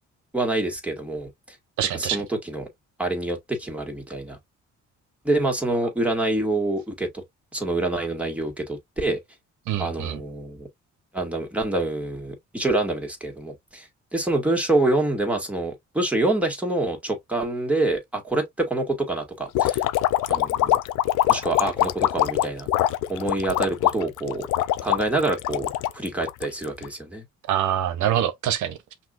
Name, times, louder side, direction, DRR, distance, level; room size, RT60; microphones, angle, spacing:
voice 1, 0.3-1.3 1.9-2.7 3.0-4.4 5.2-7.2 7.5-9.2 9.8-10.7 11.1-19.8 20.3-20.8 21.3-22.7 23.1-24.5 24.8-25.7 25.9-27.2, right 2 dB, 5° right, 1.9 m, -26 dB
voice 2, 1.8-2.2 9.7-10.2 27.5-28.8, right 11 dB, 75° right, 0.7 m, -25 dB
sound 1, 19.5-26.9, left 14 dB, 85° left, 0.5 m, -23 dB
5.9 x 2.7 x 2.4 m
cardioid pair, 90°, 30 cm